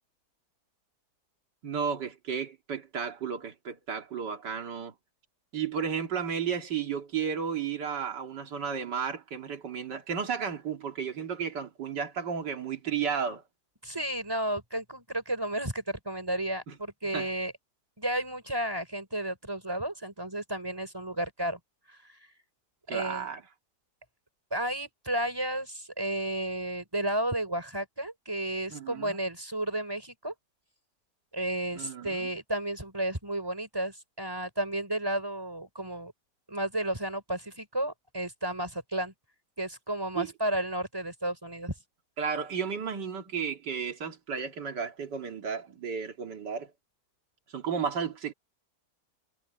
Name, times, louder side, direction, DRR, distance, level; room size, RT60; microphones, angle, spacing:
voice 1, 1.6-4.9 5.5-13.4 17.1-17.3 22.9-23.4 28.7-29.2 31.7-32.3 40.2-40.3 42.2-46.7 47.5-48.3, right 6 dB, 90° right, 2.7 m, -33 dB
voice 2, 13.8-17.5 18.0-21.6 21.9-22.2 22.9-23.3 24.5-30.3 31.3-36.1 36.5-39.1 39.6-41.7, right 1 dB, 15° right, 5.4 m, -32 dB
omnidirectional pair, 1.8 m